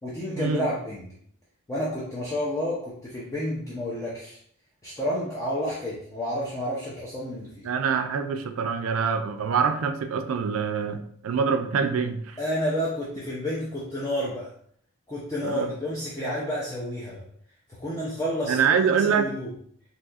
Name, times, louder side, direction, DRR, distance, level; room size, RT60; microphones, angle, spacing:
voice 1, 0.0-1.1 1.7-4.4 4.8-7.7 12.4-14.5 15.1-17.2 17.7-19.5, equal, 15° left, -7 dB, 0.5 m, -30 dB
voice 2, 7.6-12.4 15.4-15.7 18.5-19.3, right 6 dB, 70° right, 8 dB, 0.4 m, -25 dB
4.0 x 2.7 x 2.4 m, 0.64 s
head